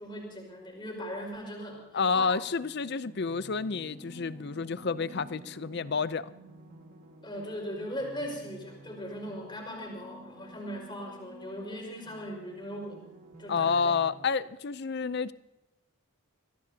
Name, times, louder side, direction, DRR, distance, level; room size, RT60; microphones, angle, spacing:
voice 1, 0.0-2.3 7.2-13.0 13.4-14.0, equal, 20° left, 5.0 m, -39 dB
voice 2, 1.9-6.3 13.5-15.3, left 5 dB, 50° left, 0.5 m, -29 dB
sound 1, 2.2-14.2, right 1 dB, 40° right, 2.0 m, -51 dB
24.5 x 17.0 x 2.8 m
head